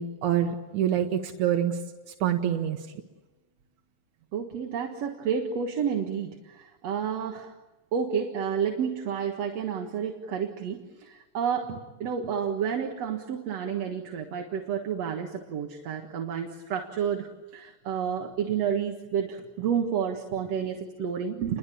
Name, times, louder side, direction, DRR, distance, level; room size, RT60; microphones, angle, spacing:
voice 1, 0.0-1.8 2.2-2.9, right 9 dB, 85° right, 5 dB, 2.6 m, -26 dB
voice 2, 4.3-7.5 7.9-21.6, right 7 dB, 60° right, 3 dB, 2.6 m, -30 dB
30.0 x 23.0 x 8.5 m, 1.1 s
omnidirectional pair, 3.4 m